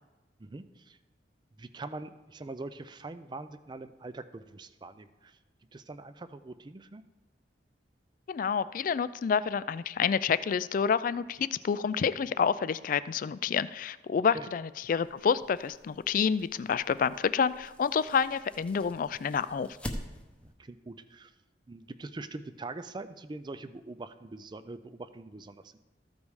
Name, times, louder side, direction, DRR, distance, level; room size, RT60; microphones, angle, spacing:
voice 1, 0.4-1.0 1.6-5.4 5.7-7.0 14.3-14.5 20.4-21.3 21.7-25.8, right 2 dB, 25° right, 13 dB, 0.4 m, -43 dB
voice 2, 8.3-19.7, left 6 dB, 45° left, 16 dB, 0.3 m, -28 dB
sound 1, 14.9-20.5, equal, 5° left, 0.8 m, -46 dB
14.0 x 5.2 x 4.8 m, 1.1 s
head